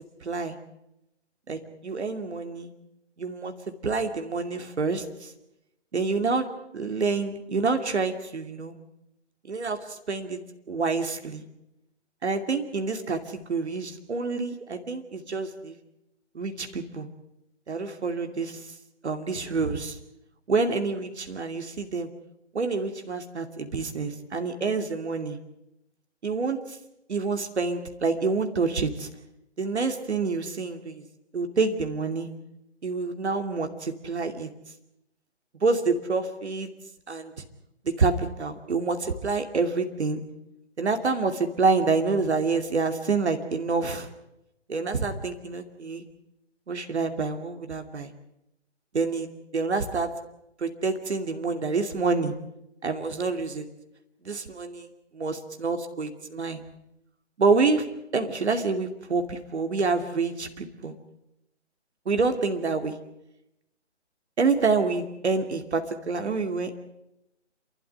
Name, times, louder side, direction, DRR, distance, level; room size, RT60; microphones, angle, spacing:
voice 1, 0.2-0.6 1.5-2.7 3.2-3.5 3.8-5.3 5.9-6.5 6.7-8.8 9.5-10.4 10.7-11.4 12.2-15.8 16.3-17.1 17.7-18.7 19.0-20.0 20.5-22.1 22.5-25.4 26.2-26.8 27.1-29.1 29.6-31.0 31.3-32.3 32.8-34.5 35.6-36.7 37.1-37.3 37.8-40.2 40.8-44.1 44.7-46.0 46.7-48.1 48.9-50.1 50.6-52.3 52.8-53.7 54.2-56.6 57.4-57.8 58.1-60.9 62.1-62.9 64.4-66.7, right 4 dB, 65° right, 7 dB, 2.7 m, -27 dB
28.0 x 12.5 x 10.0 m, 0.86 s
hypercardioid pair, 160°, 35 cm